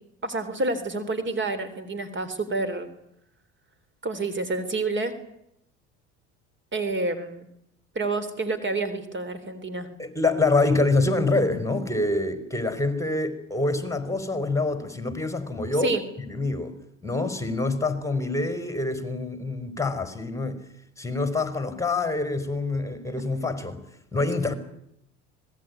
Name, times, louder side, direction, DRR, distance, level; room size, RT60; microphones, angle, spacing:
voice 1, 0.2-2.9 4.0-5.1 6.7-7.5 8.0-9.9 15.8-16.1, right 2 dB, 30° right, 3.6 m, -28 dB
voice 2, 10.0-15.9 16.2-16.7 17.0-20.6 21.0-23.8 24.1-24.5, left 2 dB, 10° left, 4.6 m, -26 dB
25.5 x 19.5 x 9.5 m
hypercardioid pair, 65°, 37 cm